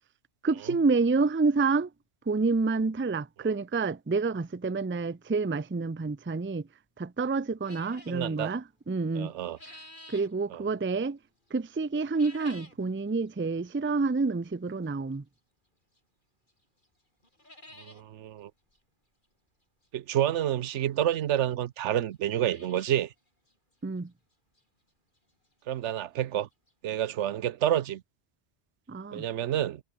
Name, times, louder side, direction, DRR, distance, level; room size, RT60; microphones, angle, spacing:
voice 1, 0.4-1.9 2.3-6.7 7.0-9.3 10.1-11.2 11.5-15.2 23.8-24.1 28.9-29.2, right 4 dB, 15° right, 0.4 m, -28 dB
sound 1, 7.6-8.2 9.2-10.3 12.0-12.8 13.3-13.4 14.2-14.3 16.0-16.1 16.5-16.6 16.8-16.9 17.2-18.0 18.4-18.5 18.7-18.8 20.3-20.4 21.2-21.3 21.5-21.6 22.1-23.1 23.5-23.6 24.1-24.2 24.6-24.7 26.4-26.5 26.7-26.8 27.2-27.3, left 1 dB, 45° left, 6.5 m, -50 dB
voice 2, 8.1-8.5 9.1-9.6 10.5-10.6 17.8-18.5 19.9-23.1 25.7-26.5 26.8-28.0 29.1-29.8, right 11 dB, 80° right, 1.0 m, -29 dB
omnidirectional pair, 1.2 m